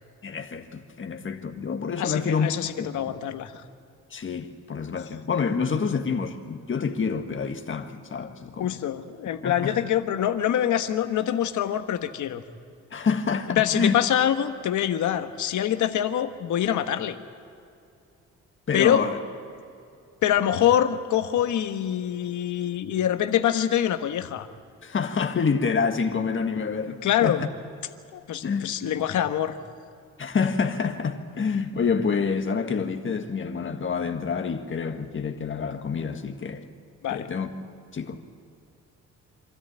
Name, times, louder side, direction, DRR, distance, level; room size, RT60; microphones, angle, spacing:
voice 1, 0.2-2.5 2.8-3.1 4.1-8.7 9.4-9.7 12.9-13.9 18.7-19.2 24.8-27.5 28.4-28.7 30.2-36.7 37.1-37.5 37.9-38.2, left 5 dB, 40° left, 1.7 m, -27 dB
voice 2, 2.0-3.5 8.6-12.4 13.6-17.1 18.7-19.1 20.2-24.5 27.0-27.4 28.1-29.6 37.0-37.3, left 10 dB, 75° left, 1.4 m, -25 dB
26.0 x 13.5 x 9.0 m
cardioid pair, 90°, 30 cm